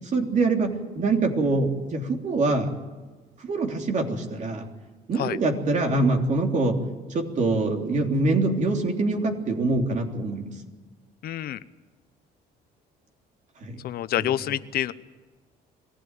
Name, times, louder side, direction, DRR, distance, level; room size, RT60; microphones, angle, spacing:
voice 1, 0.1-2.7 3.4-4.7 5.1-6.8 7.1-10.5 13.6-13.8 14.2-14.3, right 3 dB, 45° right, 3 dB, 3.4 m, -24 dB
voice 2, 11.2-11.6 13.8-14.9, left 12 dB, 65° left, 14 dB, 0.8 m, -27 dB
22.5 x 16.0 x 9.1 m, 1.3 s
cardioid pair, 110°, 17 cm